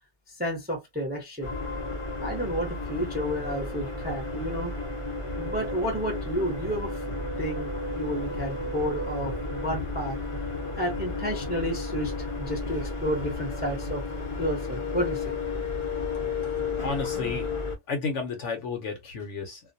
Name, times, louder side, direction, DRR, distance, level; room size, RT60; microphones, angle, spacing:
voice 1, 0.3-1.5 2.2-4.7 5.4-7.0 7.4-10.2 10.8-14.0 14.4-15.3, equal, 10° right, 0.6 m, -31 dB
sound 1, 1.4-17.8, left 3 dB, 35° left, 0.5 m, -32 dB
voice 2, 16.8-17.5 17.9-19.6, left 4 dB, 60° left, 0.9 m, -32 dB
2.4 x 2.2 x 2.5 m
omnidirectional pair, 1.6 m